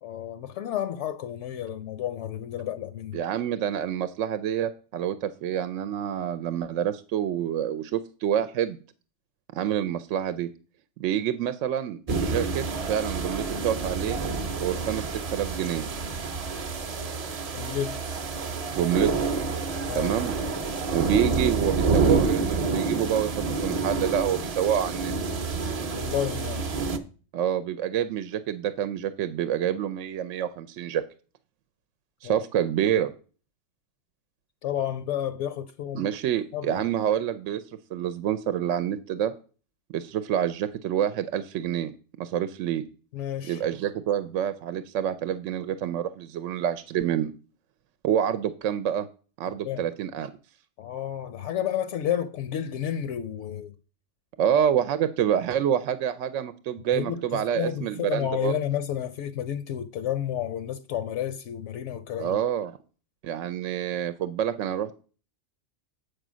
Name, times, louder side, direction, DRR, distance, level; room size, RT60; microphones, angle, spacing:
voice 1, 0.0-3.2 17.5-18.0 19.9-20.1 25.9-26.7 32.2-32.4 34.6-36.1 36.5-36.8 43.1-43.6 49.6-49.8 50.8-53.7 56.9-62.4, left 10 dB, 75° left, 0.9 m, -31 dB
voice 2, 3.1-8.8 9.5-10.5 11.0-14.2 14.6-15.9 18.7-19.1 19.9-20.6 20.9-25.1 27.3-31.0 32.2-33.1 35.9-37.6 37.9-39.3 39.9-41.9 42.2-42.8 43.5-47.3 48.0-49.1 49.4-50.3 54.4-58.5 62.2-62.8 63.2-65.0, right 10 dB, 85° right, 0.9 m, -27 dB
sound 1, 12.1-27.0, right 4 dB, 40° right, 0.6 m, -28 dB
7.7 x 5.0 x 6.1 m
omnidirectional pair, 1.3 m